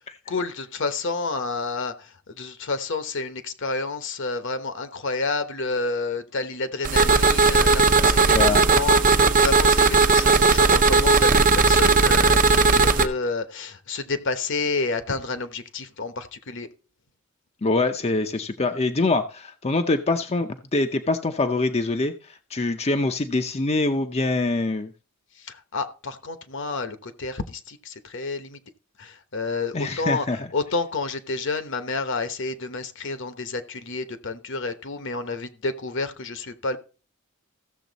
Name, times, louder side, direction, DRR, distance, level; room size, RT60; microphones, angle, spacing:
voice 1, 0.3-16.7 25.4-28.6 29.0-30.2 30.5-36.8, left 3 dB, 60° left, 1.1 m, -30 dB
sound 1, 6.8-13.1, right 4 dB, 40° right, 0.7 m, -17 dB
voice 2, 8.3-8.6 17.6-24.9 29.7-30.5, left 2 dB, 30° left, 0.6 m, -24 dB
15.0 x 7.0 x 4.0 m
head